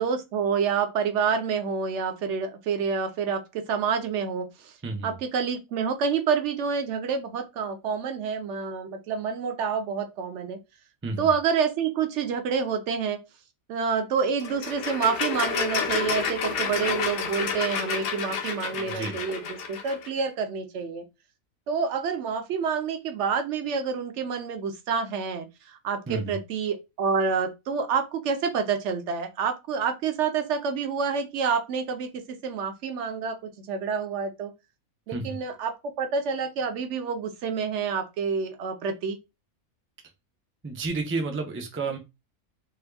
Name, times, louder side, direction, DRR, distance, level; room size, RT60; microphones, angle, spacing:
voice 1, 0.0-4.7 5.0-10.6 11.2-13.2 13.7-21.0 21.7-32.1 32.4-34.5 35.1-35.7 36.0-39.2, right 6 dB, 60° right, 0.9 m, -28 dB
voice 2, 4.8-5.2 11.0-11.3 18.7-19.2 26.1-26.4 35.1-35.4 40.6-42.0, right 3 dB, 20° right, 0.3 m, -31 dB
sound 1, 14.4-20.1, left 6 dB, 85° left, 1.2 m, -30 dB
3.4 x 2.3 x 3.4 m
omnidirectional pair, 1.5 m